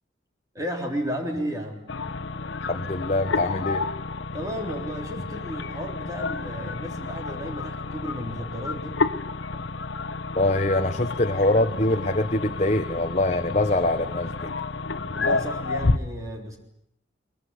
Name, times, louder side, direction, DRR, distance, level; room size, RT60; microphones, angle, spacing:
voice 1, 0.5-1.9 4.3-9.0 15.1-16.6, equal, 15° right, 2 dB, 3.5 m, -33 dB
sound 1, 1.9-16.0, left 3 dB, 80° left, 1.1 m, -30 dB
voice 2, 2.7-3.8 10.3-14.5, left 1 dB, 35° left, 6 dB, 1.2 m, -24 dB
23.0 x 22.0 x 9.7 m, 0.76 s
head